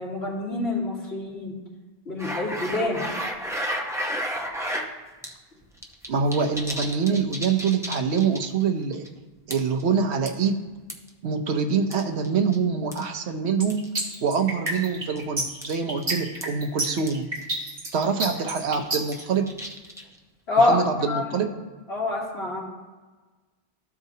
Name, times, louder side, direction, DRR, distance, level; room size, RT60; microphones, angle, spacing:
voice 1, 0.0-1.5 2.1-3.0 20.5-20.8 21.1-21.4 21.9-22.6, left 2 dB, 75° left, -7 dB, 2.7 m, -26 dB
sound 1, 2.2-4.9 5.2-5.3 5.6-8.6 8.9-9.1 9.5-9.8 10.3-11.1 11.9-12.6 12.9-13.1 13.7-13.9 14.7-14.8 15.2-15.3 15.6-15.8 16.0-16.1 16.4-16.5 17.1-17.2 17.4-17.5 17.9-18.1 18.6-20.2, equal, 5° right, 0.6 m, -32 dB
voice 2, 6.1-9.0 9.5-10.6 11.2-13.8 14.2-17.3 17.9-19.5 20.6-21.5, right 5 dB, 85° right, 6 dB, 1.0 m, -25 dB
sound 2, 13.6-19.2, right 2 dB, 45° right, 1.7 m, -29 dB
14.0 x 4.9 x 2.8 m, 1.3 s
omnidirectional pair, 1.1 m